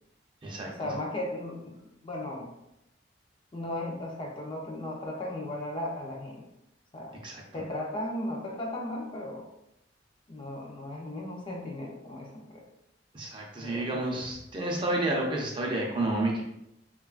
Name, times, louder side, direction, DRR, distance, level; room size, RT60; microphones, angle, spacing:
voice 1, 0.8-1.8 2.0-2.5 3.5-6.4 6.9-7.2 7.5-9.4 10.3-12.6 13.6-14.0, left 1 dB, 30° left, -1 dB, 0.4 m, -36 dB
voice 2, 7.2-7.6 13.1-16.4, right 2 dB, 25° right, -2 dB, 0.5 m, -30 dB
3.0 x 2.3 x 2.3 m, 0.85 s
head